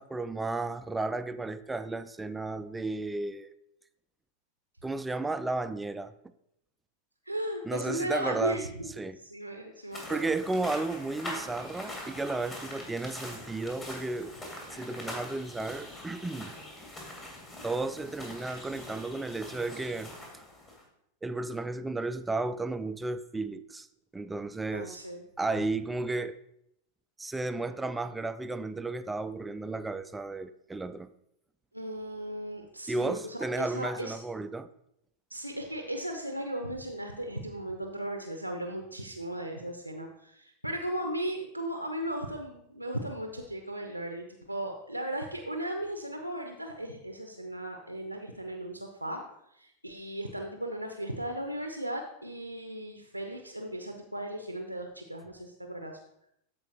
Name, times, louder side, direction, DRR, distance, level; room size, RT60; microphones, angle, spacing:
voice 1, 0.0-3.5 4.8-6.1 7.6-8.7 9.0-9.2 10.1-14.3 14.7-16.5 17.6-20.1 21.2-23.9 24.1-25.0 25.4-26.3 27.2-31.1 32.9-34.7, right 2 dB, 10° right, 0.3 m, -33 dB
voice 2, 7.3-8.9 9.2-10.3 24.7-25.2 31.7-34.2 35.3-49.2 49.6-56.0, right 1 dB, 90° right, 0.6 m, -36 dB
sound 1, 9.9-20.8, left 1 dB, 20° left, 2.1 m, -43 dB
13.5 x 4.4 x 2.9 m
figure-of-eight pair, 90°, 0 cm